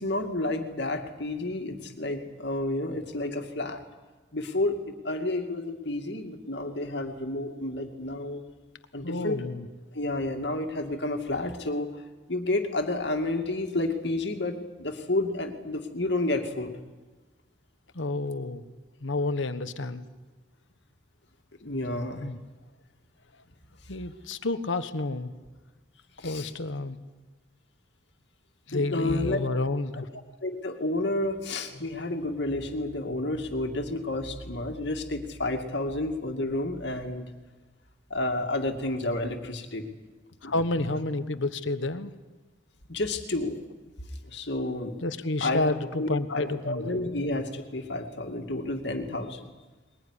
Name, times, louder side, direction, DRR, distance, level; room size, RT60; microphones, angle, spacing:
voice 1, 0.0-3.8 4.3-8.4 8.9-9.4 9.9-11.9 12.3-16.8 21.6-22.3 26.2-26.5 28.7-29.4 30.4-37.3 38.1-39.8 40.4-40.8 42.9-43.5 44.2-44.9 45.4-49.5, left 2 dB, 65° left, 4 dB, 2.4 m, -30 dB
voice 2, 9.0-9.7 17.9-18.7 19.0-20.0 22.2-22.4 23.9-25.3 26.2-27.0 28.7-30.1 40.4-42.1 45.0-47.0, left 2 dB, 85° left, 11 dB, 1.3 m, -30 dB
22.0 x 20.5 x 10.0 m, 1.3 s
head